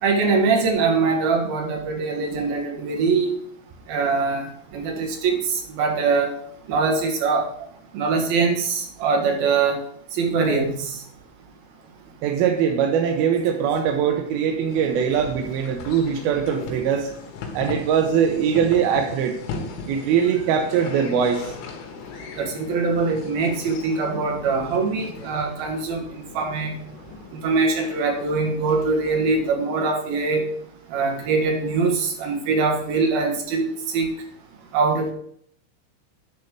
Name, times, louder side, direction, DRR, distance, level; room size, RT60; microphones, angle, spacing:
voice 1, 0.0-3.3 3.9-6.3 6.7-7.5 7.9-9.8 10.1-11.0 22.4-26.8 27.3-30.4 30.9-34.1 34.7-35.1, right 4 dB, 60° right, 2 dB, 3.0 m, -23 dB
voice 2, 12.2-17.1 17.5-19.4 19.9-21.5, right 7 dB, 80° right, 4 dB, 2.3 m, -21 dB
sound 1, 14.7-29.5, left 4 dB, 80° left, 3.7 m, -38 dB
10.5 x 4.2 x 6.7 m, 0.66 s
omnidirectional pair, 5.3 m